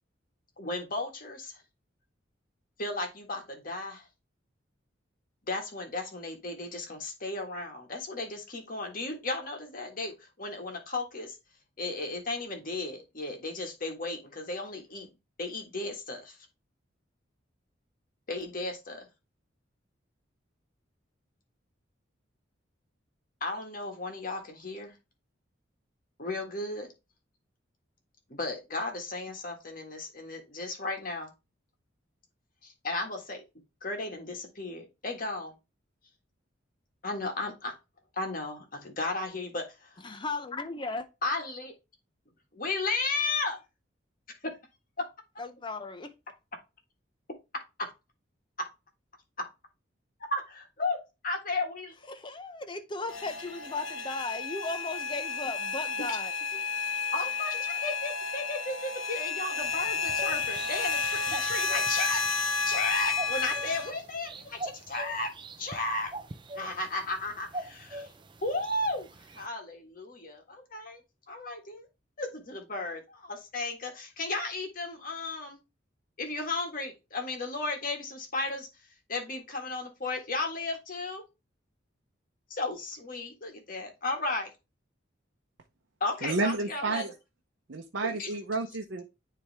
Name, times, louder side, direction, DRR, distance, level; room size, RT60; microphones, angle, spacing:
voice 1, 0.6-1.6 2.8-4.1 5.4-11.4 11.8-15.1 15.4-16.4 18.3-19.1 23.4-25.0 26.2-26.9 28.3-31.3 32.6-33.4 33.8-35.6 37.0-37.7 38.1-40.0 41.2-41.7 42.5-43.6 44.4-44.5 50.3-51.0 51.2-51.9 57.1-62.2 62.6-65.3 65.6-66.1 66.5-68.1 68.4-71.0 71.3-71.9 72.2-75.6 76.2-81.2 82.5-84.5 86.0-87.0 88.0-88.3, left 2 dB, 45° left, 1.6 m, -34 dB
voice 2, 40.0-41.1 45.4-46.1 52.1-56.3, left 3 dB, 25° left, 0.5 m, -36 dB
sound 1, 53.1-63.9, left 5 dB, 90° left, 1.3 m, -31 dB
sound 2, 59.6-69.5, right 2 dB, 25° right, 0.4 m, -44 dB
voice 3, 86.2-87.1 87.7-89.0, right 3 dB, 75° right, 0.7 m, -31 dB
10.0 x 3.4 x 3.3 m
head